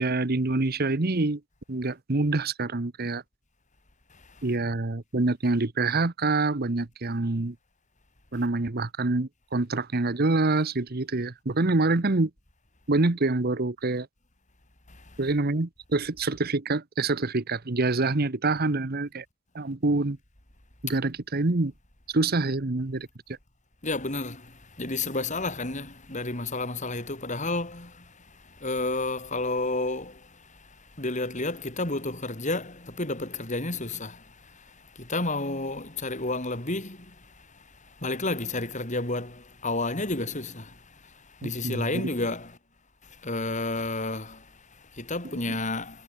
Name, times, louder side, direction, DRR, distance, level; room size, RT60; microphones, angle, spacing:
voice 1, 0.0-1.4 1.7-3.2 4.4-7.5 8.3-12.3 12.9-14.1 15.2-19.2 19.5-20.2 20.8-21.7 22.1-23.4 41.4-42.1, right 2 dB, 45° right, 1.1 m, -26 dB
voice 2, 4.1-4.4 14.9-15.2 23.8-42.6 43.0-46.0, left 2 dB, 35° left, 5.5 m, -32 dB
head